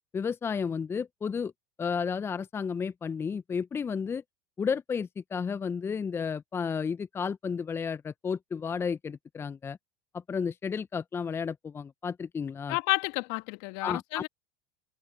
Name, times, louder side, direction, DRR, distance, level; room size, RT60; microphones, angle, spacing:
voice 1, 0.1-1.5 1.8-4.2 4.6-9.8 10.1-12.8 13.8-14.3, left 6 dB, 20° left, 0.8 m, -32 dB
voice 2, 12.7-14.3, left 29 dB, 60° left, 1.9 m, -30 dB
hypercardioid pair, 85°, 11 cm